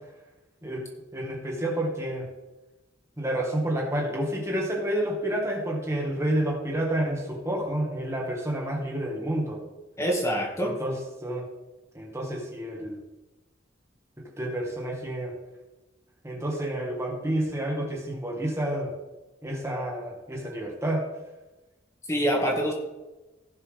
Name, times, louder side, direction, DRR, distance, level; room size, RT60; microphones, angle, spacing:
voice 1, 1.1-2.3 3.2-9.6 10.6-11.5 11.9-13.0 14.4-15.3 16.2-18.9 19.4-21.0, right 1 dB, 15° right, -1 dB, 1.9 m, -29 dB
voice 2, 10.0-10.7 22.1-22.7, equal, 15° left, -1 dB, 2.0 m, -25 dB
16.5 x 7.3 x 3.6 m, 1.1 s
head